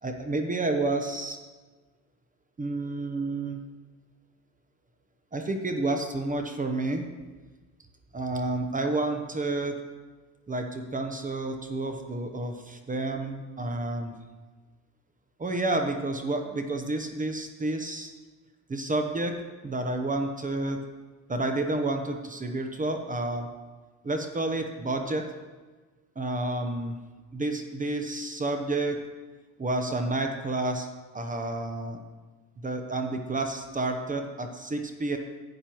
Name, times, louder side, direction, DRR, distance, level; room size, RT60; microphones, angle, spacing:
voice 1, 0.0-1.4 2.6-3.6 5.3-7.1 8.1-9.8 10.5-14.1 15.4-18.1 18.7-19.4 19.6-20.8 21.3-23.5 24.0-25.2 26.2-27.0 27.3-29.0 29.6-30.9 31.1-32.0 32.6-35.2, right 2 dB, 20° right, 5 dB, 0.8 m, -30 dB
11.0 x 8.8 x 3.0 m, 1.3 s
supercardioid pair, 95°, 43 cm